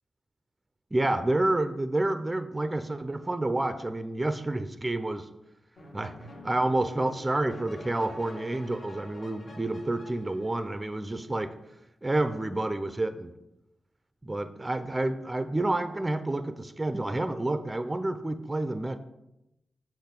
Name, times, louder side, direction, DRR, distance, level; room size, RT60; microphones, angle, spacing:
voice 1, 0.9-5.3 5.9-6.2 6.4-11.5 12.0-13.3 14.2-19.0, right 2 dB, 15° right, 10 dB, 0.4 m, -29 dB
sound 1, 5.8-11.2, left 1 dB, 65° left, 1.4 m, -47 dB
6.7 x 3.0 x 5.9 m, 0.89 s
wide cardioid pair, 110°, 0 cm